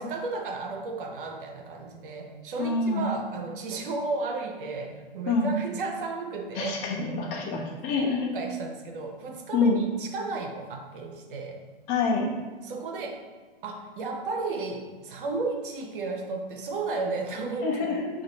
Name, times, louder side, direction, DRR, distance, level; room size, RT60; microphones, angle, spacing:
voice 1, 0.0-6.8 8.3-11.6 12.6-13.2 13.6-17.9, right 3 dB, 60° right, 3 dB, 0.8 m, -33 dB
voice 2, 2.6-3.1 5.3-5.5 6.6-8.3 9.5-9.8 11.9-12.3 17.6-18.1, left 4 dB, 35° left, -1 dB, 0.9 m, -26 dB
4.8 x 2.5 x 4.2 m, 1.3 s
hypercardioid pair, 120°, 29 cm